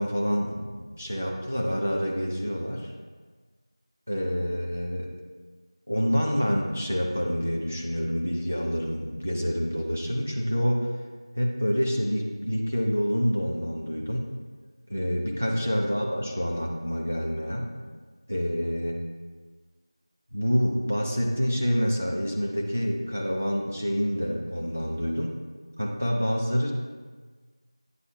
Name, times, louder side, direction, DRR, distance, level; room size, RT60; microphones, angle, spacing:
voice 1, 0.0-2.9 4.1-5.1 5.9-10.9 11.4-14.4 14.9-17.7 18.3-19.0 20.3-25.4 25.8-26.7, equal, 25° right, -1 dB, 0.4 m, -27 dB
9.1 x 3.3 x 3.2 m, 1.4 s
figure-of-eight pair, 180°, 3 cm